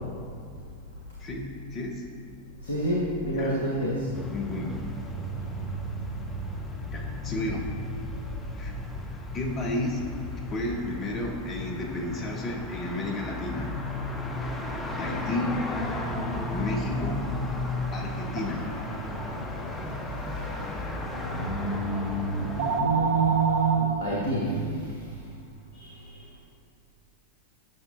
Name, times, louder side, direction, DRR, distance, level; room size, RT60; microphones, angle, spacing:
voice 1, 1.2-2.0 3.3-3.5 4.3-4.9 6.9-7.6 8.6-8.7 9.3-10.1 10.5-13.7 15.0-15.7 16.5-17.4 17.9-18.7, left 1 dB, 30° left, 0 dB, 1.1 m, -32 dB
voice 2, 2.6-4.1 21.3-24.6 25.7-25.9, right 3 dB, 70° left, -5 dB, 1.0 m, -27 dB
sound 1, 4.1-22.8, left 1 dB, 15° left, 0.7 m, -34 dB
sound 2, 18.4-23.8, right 4 dB, 55° right, 0.6 m, -32 dB
9.4 x 5.9 x 2.7 m, 2.3 s
figure-of-eight pair, 90°, 0 cm